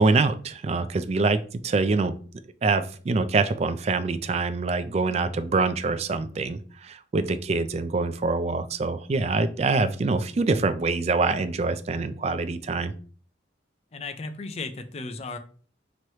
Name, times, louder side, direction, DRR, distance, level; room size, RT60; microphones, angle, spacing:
voice 1, 0.0-2.1 2.6-12.9, right 3 dB, 35° right, 12 dB, 0.3 m, -25 dB
voice 2, 13.9-15.4, left 3 dB, 35° left, 8 dB, 0.4 m, -35 dB
3.1 x 2.9 x 4.6 m, 0.42 s
head